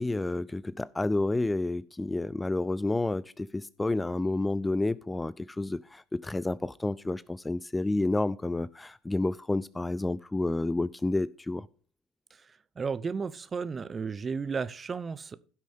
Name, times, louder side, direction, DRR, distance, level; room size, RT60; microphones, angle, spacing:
voice 1, 0.0-11.7, left 2 dB, 15° left, 0.4 m, -30 dB
voice 2, 12.8-15.4, right 5 dB, 30° right, 0.7 m, -33 dB
15.5 x 6.2 x 3.6 m
hypercardioid pair, 65°, 0 cm